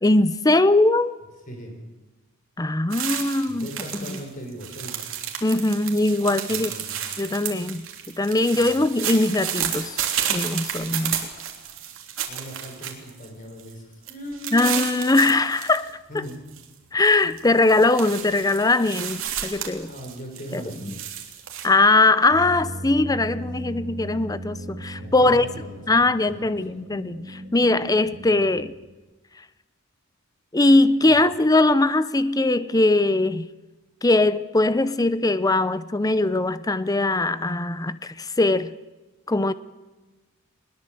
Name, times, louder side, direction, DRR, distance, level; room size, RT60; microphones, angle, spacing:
voice 1, 0.0-1.1 2.6-3.7 4.1-4.2 5.4-6.7 7.2-10.0 10.3-11.3 14.5-16.2 16.9-19.9 20.5-20.6 21.6-25.5 25.9-28.8 30.5-33.5 34.0-38.7 39.3-39.5, left 2 dB, 15° left, 0.6 m, -21 dB
voice 2, 1.5-1.8 3.5-5.1 6.5-7.0 11.9-14.9 16.1-16.5 19.9-21.1 23.6-23.8 24.9-26.2 26.5-26.6 31.1-31.2, equal, 40° left, 5.4 m, -39 dB
sound 1, 2.9-4.2 4.5-13.3 13.6-13.7 14.1-15.8 16.2-16.6 17.1-21.7, right 9 dB, 70° right, 3.1 m, -32 dB
sound 2, 22.3-28.9, right 1 dB, 35° right, 7.6 m, -38 dB
21.5 x 20.5 x 7.7 m
head